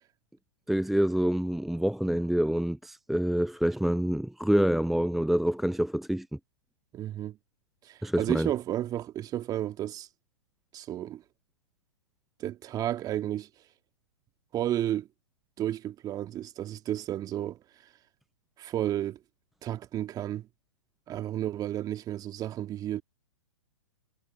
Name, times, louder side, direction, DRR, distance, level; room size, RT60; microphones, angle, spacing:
voice 1, 0.7-6.3 8.0-8.5, right 1 dB, ahead, 0.4 m, -26 dB
voice 2, 6.9-7.4 7.8-10.1 10.7-11.2 12.4-13.5 14.5-15.1 15.6-17.6 18.6-19.2 19.6-20.5 21.1-23.0, right 12 dB, 25° right, 2.0 m, -32 dB
figure-of-eight pair, 115°, 16 cm